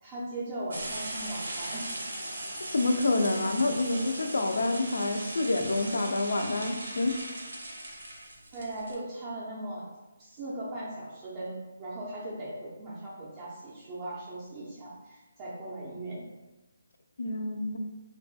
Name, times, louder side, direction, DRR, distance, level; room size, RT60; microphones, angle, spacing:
voice 1, 0.0-1.9 8.5-9.8 10.2-16.2, right 1 dB, 20° right, -7 dB, 0.4 m, -38 dB
sound 1, 0.7-8.9, right 1 dB, 80° right, 0.6 m, -38 dB
voice 2, 2.7-7.2 17.2-17.8, left 2 dB, 70° left, 5 dB, 0.3 m, -28 dB
2.3 x 2.2 x 2.6 m, 1.1 s
hypercardioid pair, 165°, 0 cm